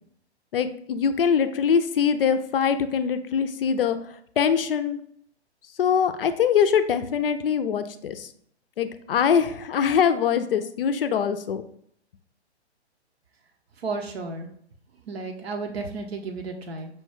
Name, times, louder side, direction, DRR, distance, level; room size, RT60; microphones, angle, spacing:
voice 1, 0.5-4.0 4.4-5.0 5.8-8.3 8.8-11.6, left 7 dB, 55° left, 11 dB, 0.4 m, -23 dB
voice 2, 13.8-14.5 15.1-16.9, right 3 dB, 65° right, 3 dB, 0.7 m, -32 dB
5.5 x 2.2 x 3.1 m, 0.69 s
figure-of-eight pair, 125°, 34 cm